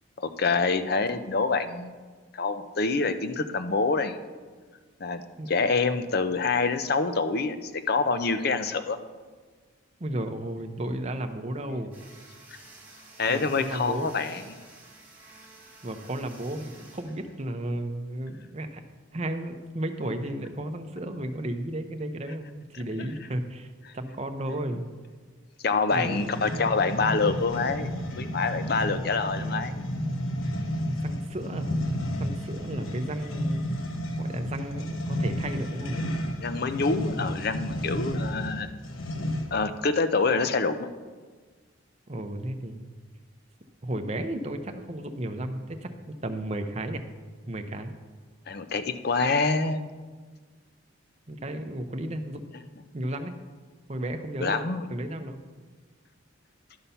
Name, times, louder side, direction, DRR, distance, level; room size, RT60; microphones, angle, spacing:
voice 1, 0.2-2.0 2.3-4.2 5.0-5.2 5.5-9.0 13.2-14.6 25.6-27.9 28.2-29.8 32.6-32.7 36.4-38.7 39.5-40.9 48.5-49.9 54.4-54.9, left 4 dB, 50° left, 10 dB, 0.5 m, -26 dB
voice 2, 10.0-11.9 13.3-14.1 15.8-18.8 19.1-23.7 23.9-24.9 25.9-26.5 29.4-29.7 31.0-31.7 32.2-33.6 34.2-36.1 42.1-42.9 43.8-45.9 46.2-47.0 47.5-47.9 51.3-52.4 52.9-53.4 53.9-54.6 54.9-55.4, right 1 dB, 30° right, 6 dB, 0.7 m, -33 dB
sound 1, 11.9-17.9, right 2 dB, 10° right, 1.6 m, -51 dB
sound 2, 25.9-39.7, equal, 85° left, 0.9 m, -32 dB
11.5 x 5.6 x 5.6 m, 1.4 s
head